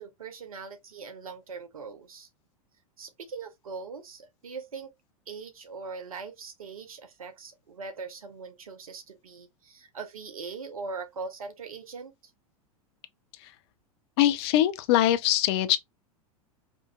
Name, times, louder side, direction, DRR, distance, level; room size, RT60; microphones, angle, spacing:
voice 1, 0.0-2.3 3.0-4.9 5.3-12.1, right 4 dB, 70° right, 0.9 m, -41 dB
voice 2, 14.2-15.8, left 13 dB, 45° left, 0.5 m, -22 dB
4.8 x 2.5 x 2.3 m
figure-of-eight pair, 90°, 19 cm